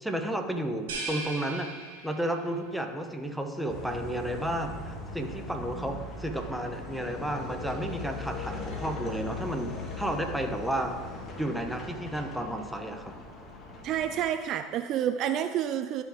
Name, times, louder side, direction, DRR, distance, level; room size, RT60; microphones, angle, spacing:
voice 1, 0.0-1.7 2.0-10.9 11.4-13.2, right 1 dB, ahead, 4 dB, 1.0 m, -32 dB
sound 1, 0.9-2.6, right 3 dB, 75° right, 1.8 m, -38 dB
sound 2, 3.7-14.3, left 3 dB, 35° left, 1.6 m, -40 dB
voice 2, 13.8-16.0, right 10 dB, 50° right, 9 dB, 0.4 m, -29 dB
12.5 x 4.8 x 3.6 m, 1.5 s
hypercardioid pair, 75°, 0 cm